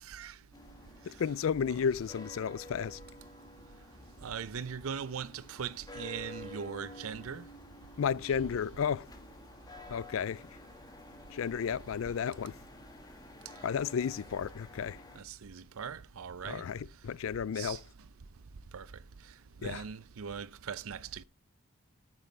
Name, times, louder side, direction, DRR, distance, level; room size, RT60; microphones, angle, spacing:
sound 1, 0.5-15.2, left 1 dB, 20° left, 1.6 m, -51 dB
voice 1, 1.1-3.0 8.0-9.1 9.9-10.4 11.3-12.6 13.6-15.0 16.4-17.8 19.6-19.8, left 7 dB, 65° left, 0.4 m, -33 dB
voice 2, 4.2-7.4 15.3-16.6 17.6-17.8 18.7-18.8 19.6-21.2, right 7 dB, 75° right, 0.6 m, -40 dB
9.7 x 9.0 x 3.3 m
head